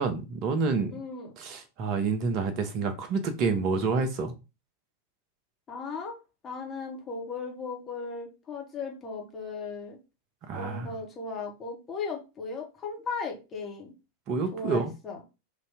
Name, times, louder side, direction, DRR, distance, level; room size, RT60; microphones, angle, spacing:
voice 1, 0.0-0.9 1.4-4.3 10.4-10.9 14.3-14.9, right 4 dB, 40° right, 0.9 m, -28 dB
voice 2, 0.9-1.3 5.7-6.2 6.4-10.0 10.5-13.9 14.5-15.2, left 4 dB, 25° left, 1.4 m, -37 dB
3.9 x 2.8 x 3.5 m
figure-of-eight pair, 90°, 0 cm